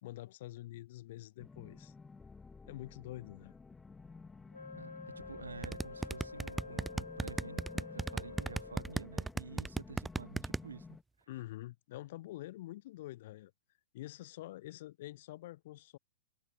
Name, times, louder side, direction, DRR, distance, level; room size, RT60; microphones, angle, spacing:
voice 1, 0.0-1.9 2.7-3.5 11.3-13.5 13.9-16.0, left 16 dB, 50° left, 3.0 m, -46 dB
sound 1, 1.4-11.0, left 4 dB, 10° left, 3.1 m, -53 dB
Wind instrument woodwind instrument, 4.5-9.1, left 4 dB, 75° left, 1.7 m, -48 dB
voice 2, 4.8-11.3, right 5 dB, 75° right, 1.0 m, -50 dB
sound 2, 5.6-10.6, right 3 dB, 5° right, 0.4 m, -35 dB
figure-of-eight pair, 105°, 0 cm